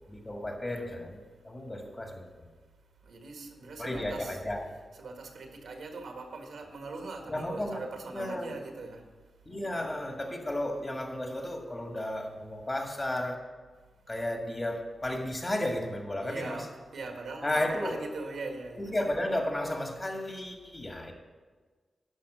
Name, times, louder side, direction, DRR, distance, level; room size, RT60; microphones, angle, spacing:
voice 1, 0.1-2.3 3.8-4.6 7.3-7.8 8.1-8.6 9.5-13.4 14.1-16.7 17.4-17.9 18.8-21.1, left 1 dB, 30° left, 2 dB, 1.9 m, -33 dB
voice 2, 3.0-4.4 4.9-9.0 9.4-9.5 16.2-18.9 20.9-21.1, right 3 dB, 80° right, 4 dB, 1.6 m, -41 dB
11.5 x 5.9 x 7.6 m, 1.4 s
cardioid pair, 70°, 0 cm